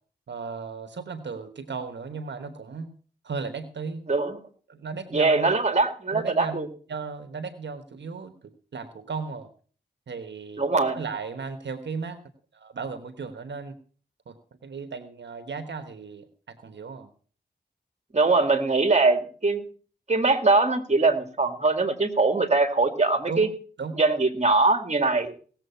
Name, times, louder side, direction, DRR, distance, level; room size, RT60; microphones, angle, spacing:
voice 1, 0.3-2.9 3.2-4.0 4.7-5.5 6.1-6.6 6.9-9.5 10.1-10.7 10.9-12.2 12.5-13.8 14.3-14.4 14.6-17.1 23.3-23.5 23.8-23.9, right 5 dB, 75° right, 9 dB, 1.2 m, -35 dB
voice 2, 4.1-4.4 5.1-6.7 10.6-11.0 18.1-19.6 20.1-23.5 23.9-25.3, right 3 dB, 40° right, 8 dB, 2.2 m, -22 dB
17.5 x 7.5 x 5.6 m, 0.42 s
cardioid pair, 55°, 19 cm